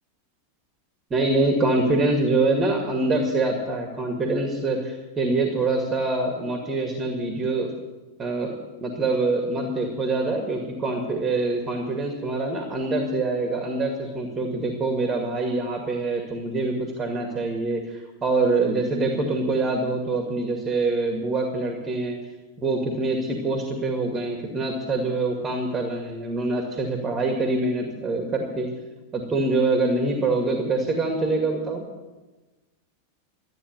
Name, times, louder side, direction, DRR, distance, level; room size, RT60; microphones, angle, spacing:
voice 1, 1.1-7.7 8.2-22.2 22.6-28.7 29.1-31.8, right 2 dB, 20° right, 2 dB, 2.1 m, -25 dB
13.5 x 9.4 x 9.5 m, 1.2 s
figure-of-eight pair, 90°, 0 cm